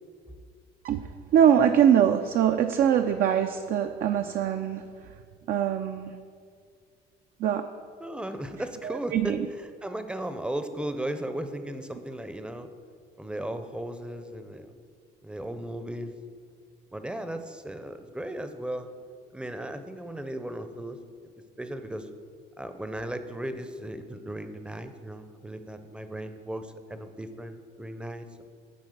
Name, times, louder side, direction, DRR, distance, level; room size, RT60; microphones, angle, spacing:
voice 1, 0.8-4.8 5.5-6.1 7.4-7.6 8.8-9.5, right 9 dB, 60° right, 6 dB, 0.4 m, -23 dB
voice 2, 8.0-12.7 13.2-14.7 15.2-16.1 16.9-18.9 19.3-21.0 21.2-22.1 22.6-28.4, right 1 dB, 5° right, 9 dB, 0.6 m, -36 dB
9.5 x 4.4 x 6.6 m, 2.1 s
cardioid pair, 110°, 17 cm